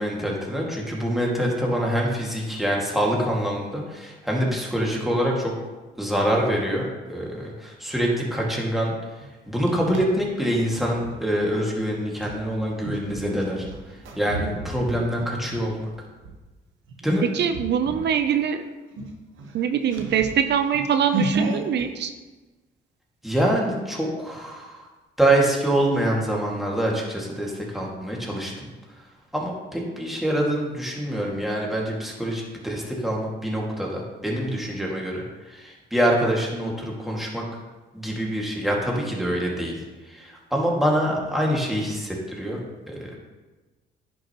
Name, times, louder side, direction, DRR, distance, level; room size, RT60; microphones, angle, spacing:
voice 1, 0.0-5.5 6.0-8.9 9.5-13.7 14.2-15.9 17.0-17.2 23.2-24.8 25.2-28.7 29.3-35.2 35.5-37.4 37.9-39.7 40.1-42.6 42.9-43.0, right 1 dB, ahead, -3 dB, 2.0 m, -25 dB
sound 1, 9.2-11.2 12.2-16.4 16.9-17.1 17.5-18.2 18.5-18.6 18.9-21.9, right 2 dB, 75° right, 1.0 m, -33 dB
voice 2, 17.3-18.6 19.5-22.1, right 8 dB, 60° right, 8 dB, 0.6 m, -23 dB
10.0 x 6.1 x 3.0 m, 1.2 s
cardioid pair, 90°, 20 cm